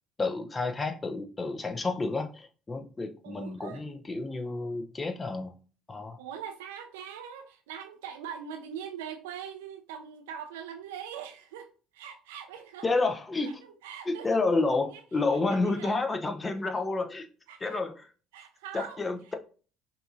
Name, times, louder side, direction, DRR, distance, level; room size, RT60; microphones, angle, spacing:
voice 1, 0.2-5.5 5.9-6.2 12.8-13.5 14.1-17.3 17.6-18.1 18.7-19.4, left 3 dB, 25° left, 0.6 m, -30 dB
voice 2, 3.2-3.8 6.2-11.7 11.9-12.9 13.4-14.4 14.9-15.0 15.3-15.9 17.5-17.8 18.3-19.0, right 8 dB, 75° right, 0.5 m, -42 dB
5.5 x 2.6 x 2.6 m
hypercardioid pair, 55°, 0 cm